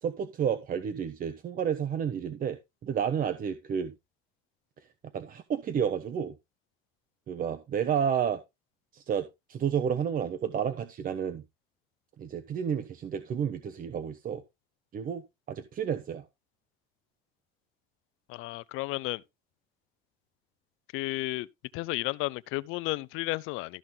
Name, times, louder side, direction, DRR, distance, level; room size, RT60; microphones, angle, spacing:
voice 1, 0.0-3.9 4.8-4.9 5.1-6.4 7.3-8.4 8.9-11.4 12.2-14.4 14.9-16.3, right 8 dB, 40° right, 1.1 m, -31 dB
voice 2, 18.3-19.2 20.9-21.5 21.7-23.8, left 21 dB, 75° left, 0.7 m, -33 dB
14.0 x 5.8 x 3.8 m
cardioid pair, 120°, 21 cm